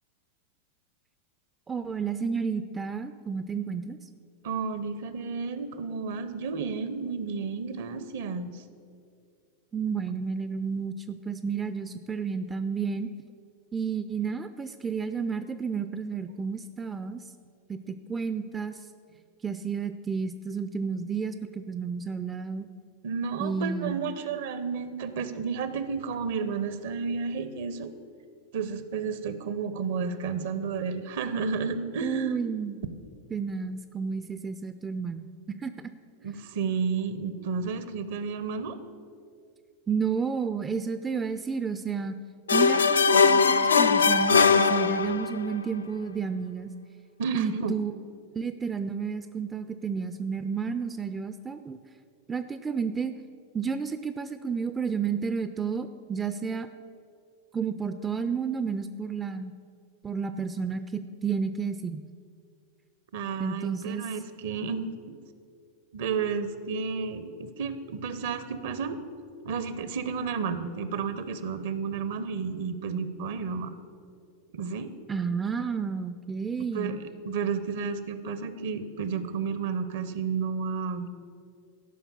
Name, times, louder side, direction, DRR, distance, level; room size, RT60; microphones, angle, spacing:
voice 1, 1.7-4.0 9.7-13.1 13.7-17.2 17.7-18.8 19.4-22.7 23.4-24.0 32.0-32.8 33.3-35.3 35.6-35.9 39.9-42.1 42.5-46.7 47.3-47.9 48.4-51.8 52.3-53.1 53.5-56.7 57.5-59.5 60.0-62.0 63.4-64.1 75.1-76.9, right 6 dB, 15° right, 10 dB, 0.4 m, -31 dB
voice 2, 4.4-8.6 23.0-27.9 28.5-32.4 36.2-38.8 47.2-47.8 63.1-65.2 65.9-69.0 69.4-73.7 74.5-74.9 76.7-81.1, right 5 dB, 55° right, 12 dB, 0.7 m, -32 dB
sound 1, 42.5-45.4, left 5 dB, 70° left, 0.4 m, -20 dB
13.0 x 5.7 x 7.0 m, 2.3 s
figure-of-eight pair, 90°, 0 cm